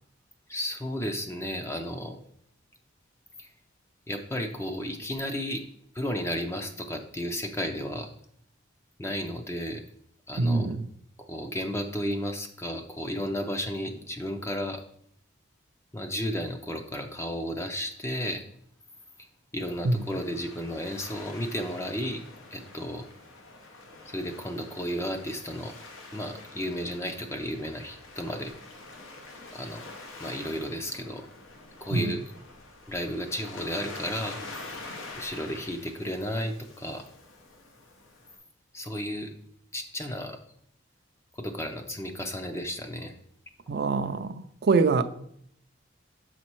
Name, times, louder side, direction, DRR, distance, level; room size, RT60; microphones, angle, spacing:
voice 1, 0.5-2.2 3.4-3.5 4.1-5.6 5.9-8.1 9.0-9.8 10.3-10.7 11.2-14.8 15.9-18.4 19.2-19.3 19.5-22.2 22.5-23.1 24.1-25.8 26.1-28.5 29.5-29.8 30.2-31.3 31.8-32.2 32.9-34.4 35.2-37.1 38.7-39.3 39.7-40.4 41.4-43.1, equal, 15° left, 0.5 m, -33 dB
voice 2, 10.4-10.9 19.8-20.0 31.9-32.1 43.7-45.0, right 3 dB, 50° right, 0.4 m, -24 dB
Waves surf, 19.6-38.4, left 2 dB, 75° left, 0.9 m, -46 dB
6.8 x 4.2 x 4.5 m
head